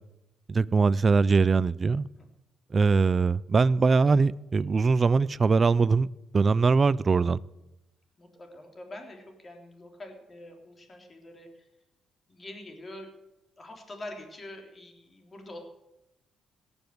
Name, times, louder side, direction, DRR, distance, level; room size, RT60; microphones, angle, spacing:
voice 1, 0.5-2.1 2.7-6.1 6.3-7.4, right 4 dB, 35° right, 19 dB, 0.5 m, -22 dB
voice 2, 3.9-4.2 8.2-11.7 12.3-13.1 13.6-15.6, left 1 dB, 30° left, 3 dB, 3.5 m, -45 dB
17.5 x 7.2 x 7.9 m, 0.92 s
cardioid pair, 90°, 0 cm